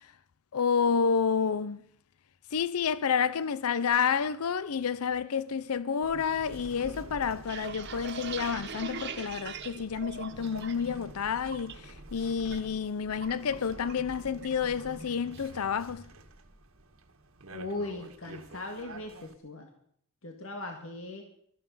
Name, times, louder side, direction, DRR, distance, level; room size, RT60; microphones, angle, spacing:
voice 1, 0.5-1.8 2.5-16.1, left 6 dB, 85° left, 0.5 m, -29 dB
sound 1, 6.0-19.3, right 2 dB, 75° right, 1.5 m, -48 dB
sound 2, 7.5-10.9 11.2-11.7 12.1-12.6 12.8-14.1 14.4-14.7 15.0-15.5, right 6 dB, 50° right, 1.5 m, -41 dB
voice 2, 17.5-19.7 20.2-21.2, left 2 dB, 70° left, 1.9 m, -38 dB
17.5 x 13.5 x 5.5 m
head